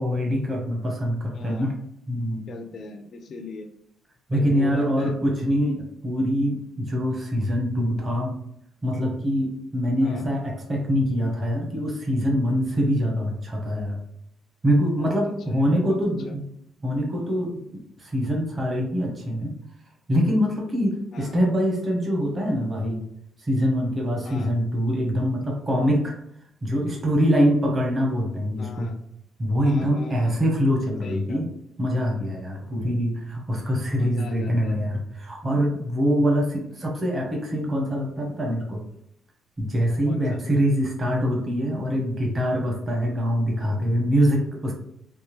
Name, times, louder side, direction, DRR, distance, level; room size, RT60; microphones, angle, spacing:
voice 1, 0.0-1.7 2.1-2.4 4.3-8.3 8.8-14.0 14.6-16.4 16.8-19.5 20.1-23.0 23.4-26.1 26.6-28.9 29.4-31.5 31.8-38.8 39.6-44.7, equal, 25° right, -1 dB, 0.9 m, -24 dB
voice 2, 1.3-1.7 2.5-3.7 4.3-5.2 10.0-10.3 15.0-15.2 15.5-16.0 16.2-16.3 21.1-21.4 24.2-24.5 28.6-29.0 29.6-30.4 31.0-31.4 34.0-34.8 40.1-40.4, left 3 dB, 50° left, 5 dB, 0.4 m, -40 dB
3.5 x 2.7 x 3.1 m, 0.73 s
cardioid pair, 155°, 0 cm